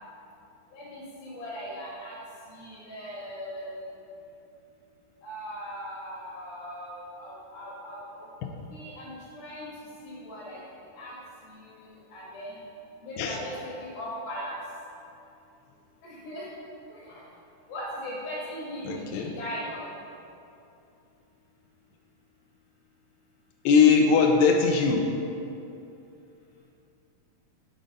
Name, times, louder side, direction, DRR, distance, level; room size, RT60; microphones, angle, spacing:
voice 1, 0.7-2.1 2.5-3.7 5.2-8.3 8.7-9.7 10.0-10.6 11.0-11.2 11.5-12.6 13.0-14.6 16.0-16.5 16.9-17.2 17.7-19.9, equal, 70° left, -5 dB, 3.0 m, -39 dB
voice 2, 18.9-19.3 23.7-25.0, left 5 dB, 85° left, 2 dB, 2.7 m, -20 dB
7.7 x 5.1 x 4.0 m, 2.7 s
omnidirectional pair, 4.5 m